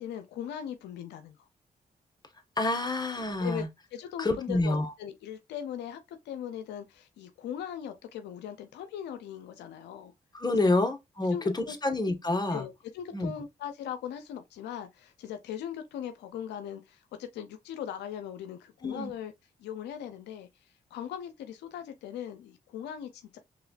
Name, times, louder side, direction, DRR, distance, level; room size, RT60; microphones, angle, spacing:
voice 1, 0.0-1.5 3.4-3.6 3.9-10.1 10.6-10.7 11.3-11.8 12.5-19.3 19.6-20.5 20.9-23.4, left 9 dB, 85° left, 0.6 m, -39 dB
voice 2, 2.6-3.7 4.2-4.9 10.3-12.7 13.1-13.3 18.8-19.1, left 2 dB, 25° left, 1.5 m, -28 dB
4.8 x 3.5 x 2.5 m
supercardioid pair, 50°, 17 cm